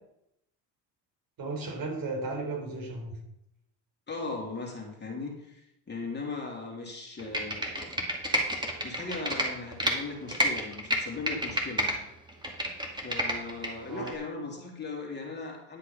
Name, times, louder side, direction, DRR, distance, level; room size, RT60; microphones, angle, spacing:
voice 1, 1.4-3.2 13.9-14.1, right 3 dB, 50° right, 1 dB, 4.2 m, -35 dB
voice 2, 4.1-7.9 8.8-12.0 13.0-15.8, left 3 dB, 25° left, -1 dB, 3.0 m, -38 dB
Computer keyboard, 7.2-9.9 10.3-11.9 12.3-13.7 14.1-14.2, equal, 10° right, 2.3 m, -29 dB
11.0 x 6.4 x 5.6 m, 0.80 s
supercardioid pair, 100°, 43 cm